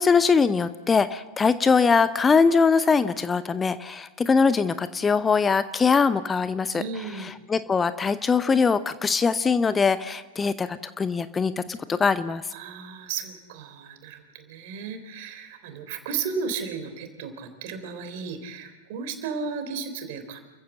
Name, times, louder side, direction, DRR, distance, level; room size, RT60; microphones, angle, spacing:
voice 1, 0.0-6.8 7.2-12.4, left 5 dB, 15° left, 14 dB, 0.7 m, -22 dB
voice 2, 6.7-7.3 12.5-20.4, right 5 dB, 50° right, 8 dB, 3.4 m, -34 dB
29.0 x 15.0 x 7.8 m, 1.3 s
figure-of-eight pair, 90°, 0 cm